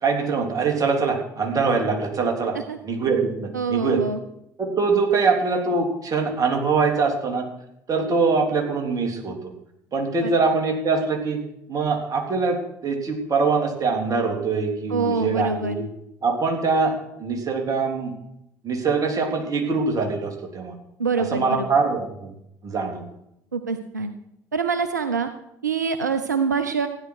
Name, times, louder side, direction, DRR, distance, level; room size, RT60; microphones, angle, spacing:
voice 1, 0.0-2.5 2.8-4.0 4.6-7.5 7.9-9.5 9.9-11.4 11.7-12.6 12.8-15.9 16.2-16.9 17.2-18.1 18.6-20.8 21.3-22.3 22.6-23.0, right 4 dB, 40° right, 2 dB, 3.4 m, -23 dB
voice 2, 3.5-4.2 10.2-10.3 14.9-15.8 21.0-21.7 23.5-24.1 24.5-25.3 25.6-26.9, right 5 dB, 90° right, 8 dB, 0.6 m, -25 dB
16.0 x 10.0 x 4.9 m, 0.81 s
figure-of-eight pair, 55°, 9 cm